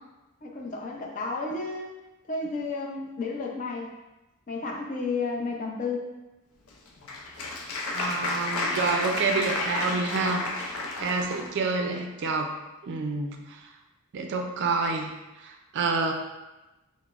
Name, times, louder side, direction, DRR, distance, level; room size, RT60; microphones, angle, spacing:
voice 1, 0.4-1.9 2.3-3.9 4.5-6.1, left 3 dB, 40° left, 0 dB, 0.5 m, -32 dB
Applause, 6.7-11.5, left 2 dB, 90° left, 0.5 m, -31 dB
voice 2, 7.9-12.6 12.8-13.6 14.1-15.1 15.4-16.1, right 4 dB, 55° right, 3 dB, 0.4 m, -28 dB
5.6 x 2.0 x 2.4 m, 1.0 s
head